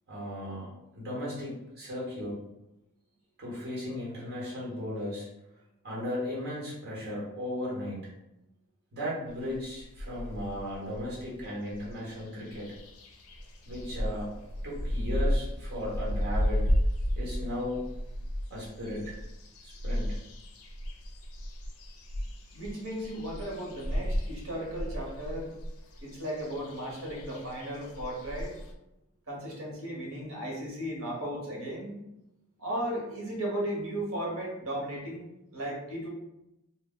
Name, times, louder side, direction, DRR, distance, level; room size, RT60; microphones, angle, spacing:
voice 1, 0.1-0.7 0.9-2.4 3.4-5.3 5.8-8.1 8.9-12.7 13.6-14.3 14.6-16.7 17.2-17.8 18.5-19.2 19.6-20.2, left 1 dB, 45° right, -6 dB, 1.0 m, -36 dB
sound 1, 9.3-11.4 11.7-28.7, equal, 80° left, 0.5 m, -34 dB
voice 2, 22.5-25.5 26.0-28.5 29.3-31.9 32.6-36.1, right 1 dB, 75° right, -2 dB, 0.9 m, -35 dB
2.1 x 2.1 x 3.7 m, 0.89 s
head